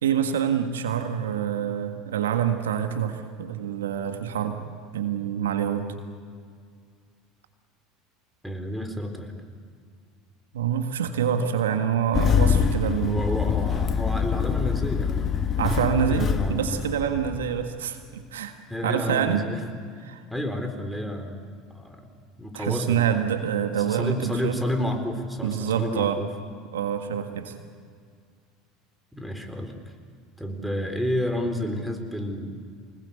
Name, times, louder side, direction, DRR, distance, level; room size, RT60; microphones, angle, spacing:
voice 1, 0.0-4.6 4.9-5.9 10.5-13.2 15.6-18.5 18.8-19.5 20.0-20.2 22.5-24.6 25.4-26.2 26.7-27.5, right 8 dB, 80° right, 7 dB, 1.6 m, -26 dB
voice 2, 8.4-9.3 13.1-15.5 16.1-16.6 18.7-19.6 20.3-22.0 22.4-23.0 23.9-26.3 29.1-29.7 30.4-32.5, left 1 dB, ahead, 6 dB, 4.1 m, -30 dB
Engine starting, 12.1-17.7, left 7 dB, 35° left, 1.5 m, -25 dB
25.0 x 20.0 x 8.4 m, 2.2 s
hypercardioid pair, 80°, 0 cm